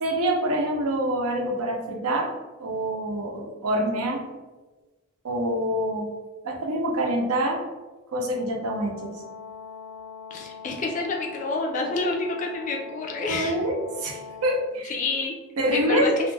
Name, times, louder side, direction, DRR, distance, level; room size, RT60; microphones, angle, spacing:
voice 1, 0.0-2.3 2.6-4.2 5.2-6.1 6.4-7.6 8.1-9.1 13.3-13.7 14.0-15.0 15.6-16.1, right 1 dB, 80° right, 1 dB, 0.5 m, -26 dB
Brass instrument, 8.3-14.7, left 6 dB, 10° right, 0.6 m, -42 dB
voice 2, 10.3-13.6 14.8-15.4 15.7-16.1, left 3 dB, 35° left, 0 dB, 0.3 m, -28 dB
2.3 x 2.1 x 3.2 m, 1.2 s
head